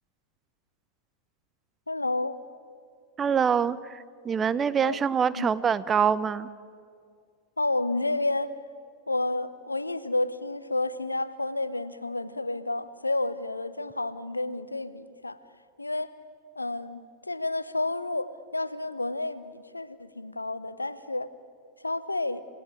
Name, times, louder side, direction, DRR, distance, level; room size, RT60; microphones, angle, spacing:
voice 1, 1.9-2.4 4.8-5.0 5.4-5.5 7.6-8.6 9.1-15.4 15.8-16.1 16.6-21.3 21.8-22.4, left 2 dB, 85° left, 15 dB, 0.8 m, -30 dB
voice 2, 3.2-6.5, right 7 dB, 20° right, 17 dB, 0.8 m, -25 dB
28.5 x 17.0 x 8.8 m, 2.2 s
figure-of-eight pair, 90°, 0 cm